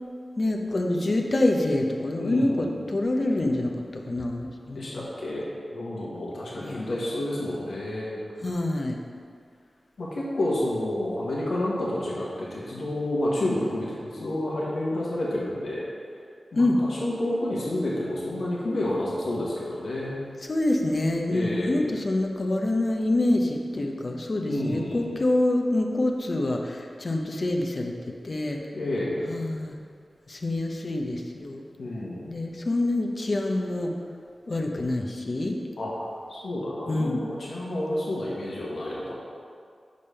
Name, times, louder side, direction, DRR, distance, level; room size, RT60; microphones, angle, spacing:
voice 1, 0.4-5.1 6.5-6.8 8.4-9.0 16.6-16.8 20.4-27.9 28.2-28.6 29.3-29.8 30.3-31.6 32.3-33.9 34.5-35.6 36.9-37.2, left 1 dB, 55° left, 2 dB, 0.8 m, -26 dB
voice 2, 2.1-2.8 4.7-8.2 10.0-15.8 16.5-20.2 21.3-21.9 24.5-25.2 28.7-29.3 31.8-32.3 35.8-35.9 36.3-39.1, left 1 dB, 80° left, -6 dB, 1.3 m, -30 dB
5.3 x 5.2 x 5.5 m, 2.2 s
cardioid pair, 50°, 0 cm